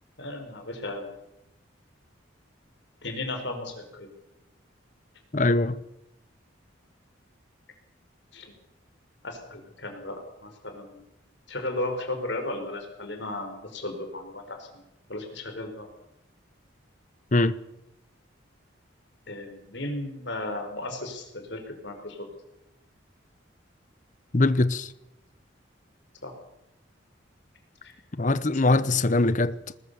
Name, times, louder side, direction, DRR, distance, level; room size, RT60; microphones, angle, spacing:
voice 1, 0.2-1.1 3.0-4.1 8.3-8.5 9.2-11.0 11.5-14.8 15.1-15.9 19.3-22.3 26.2-26.3 27.8-27.9 28.7-29.0, left 2 dB, 60° left, 4.9 m, -35 dB
voice 2, 5.3-5.8 17.3-17.6 24.3-24.9 28.1-29.6, left 2 dB, 40° left, 0.9 m, -22 dB
20.0 x 20.0 x 7.0 m
head